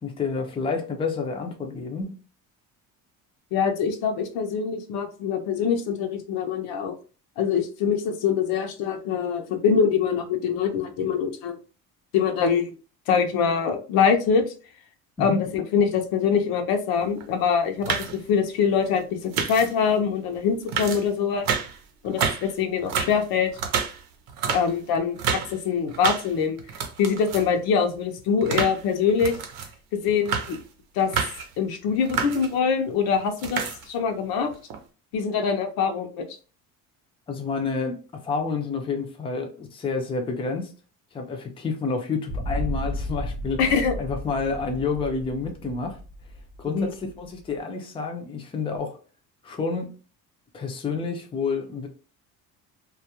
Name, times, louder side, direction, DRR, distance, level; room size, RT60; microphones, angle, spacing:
voice 1, 0.0-2.1 15.2-15.4 37.3-40.7 41.1-46.0 46.6-49.0 49.4-49.9 50.5-51.9, left 4 dB, 15° left, 0.4 m, -29 dB
voice 2, 3.5-6.9 7.4-11.6 12.1-12.7 13.1-14.4 15.2-21.5 22.0-23.5 24.5-26.6 27.0-29.4 29.9-30.6 30.9-31.1 31.6-34.5 35.1-36.2 43.6-43.9 46.7-46.9, left 6 dB, 75° left, 0.6 m, -24 dB
sound 1, 17.0-17.2 17.6-18.2 19.3-19.9 20.3-20.4 20.7-21.8 22.1-22.5 22.8-25.6 25.9-26.3 26.6-27.6 27.9-29.7 30.1-30.6 31.0-31.5 31.9-32.6 33.2-34.0 34.5-34.8, right 6 dB, 70° right, 0.7 m, -29 dB
sound 2, 42.3-47.5, equal, 30° right, 0.7 m, -33 dB
2.3 x 2.2 x 2.8 m
cardioid pair, 120°, 37 cm